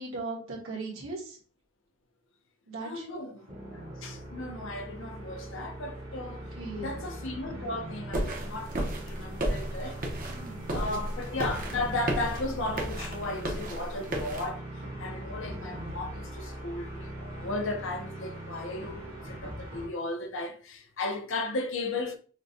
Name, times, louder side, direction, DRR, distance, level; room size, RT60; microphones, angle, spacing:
voice 1, 0.0-1.4 2.7-3.2 6.4-7.0 10.3-11.0, right 3 dB, 65° right, 1.3 m, -39 dB
voice 2, 2.8-6.4 6.7-10.0 10.7-22.2, left 2 dB, 60° left, 0.6 m, -35 dB
sound 1, 3.4-19.9, right 1 dB, 85° right, 1.6 m, -41 dB
sound 2, 8.1-14.5, right 1 dB, 40° right, 0.7 m, -34 dB
5.9 x 2.2 x 2.7 m
head